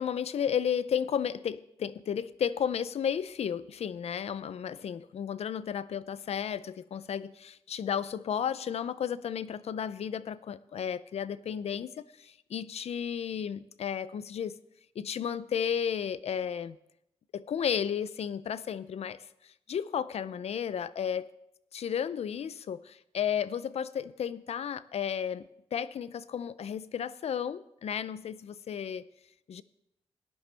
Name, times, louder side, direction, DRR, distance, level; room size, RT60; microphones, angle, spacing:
voice 1, 0.0-14.6 15.0-16.8 17.3-19.2 19.7-21.3 21.7-25.5 25.7-29.1 29.5-29.6, left 8 dB, 70° left, 16 dB, 0.5 m, -33 dB
17.5 x 10.0 x 3.4 m, 0.83 s
wide cardioid pair, 110°, 11 cm